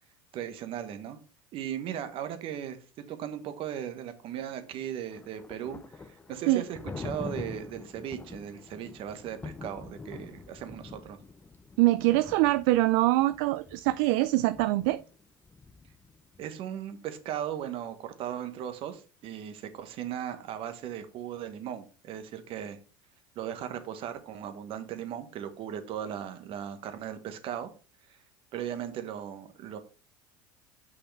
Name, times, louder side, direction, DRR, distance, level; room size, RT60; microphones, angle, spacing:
voice 1, 0.3-1.2 1.5-11.2 16.4-22.8 23.3-27.7 28.1-28.2 28.5-29.8, right 9 dB, 50° right, 1.3 m, -37 dB
Thunder, 4.7-16.5, left 3 dB, 15° left, 0.6 m, -45 dB
voice 2, 11.8-15.0, right 18 dB, 65° right, 0.4 m, -24 dB
6.7 x 5.5 x 3.3 m
hypercardioid pair, 90°, 12 cm